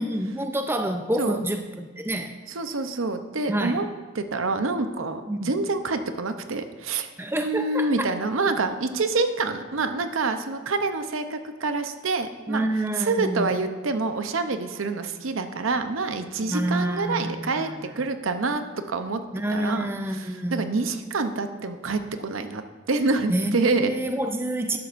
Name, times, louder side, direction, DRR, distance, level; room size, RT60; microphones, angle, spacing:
voice 1, 0.0-2.3 3.5-3.8 5.3-5.5 7.2-8.1 12.5-13.5 16.4-17.8 19.3-20.7 23.3-24.8, right 1 dB, 10° right, 6 dB, 0.5 m, -28 dB
voice 2, 2.5-3.9 4.1-7.1 7.4-12.7 13.0-19.2 19.5-23.9, right 3 dB, 80° right, 8 dB, 0.7 m, -27 dB
12.0 x 11.5 x 2.6 m, 1.4 s
head